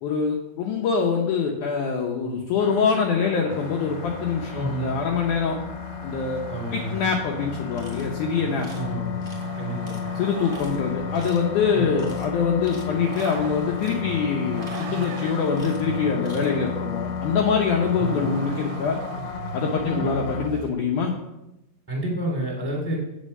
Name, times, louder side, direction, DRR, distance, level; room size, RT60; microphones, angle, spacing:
voice 1, 0.0-5.6 6.0-6.4 6.7-8.7 10.2-19.0 19.5-21.1, left 5 dB, 70° left, 0 dB, 1.9 m, -24 dB
sound 1, 2.6-20.5, left 7 dB, 90° left, 2.8 m, -33 dB
Vehicle, 3.5-20.7, right 8 dB, 80° right, 2.0 m, -39 dB
voice 2, 4.5-4.9 6.5-7.0 8.7-9.2 9.6-10.0 11.7-12.0 18.0-18.3 19.8-20.1 21.9-23.0, right 1 dB, ahead, -3 dB, 2.1 m, -30 dB
sound 2, 7.7-8.1 8.6-8.9 9.2-9.4 9.8-10.0 10.4-10.7 11.1-11.5 11.9-12.3 12.6-13.4 13.8-14.0 14.4-15.2 15.5-15.9 16.2-16.5, equal, 15° right, 1.1 m, -46 dB
8.4 x 6.8 x 5.4 m, 0.93 s
omnidirectional pair, 4.3 m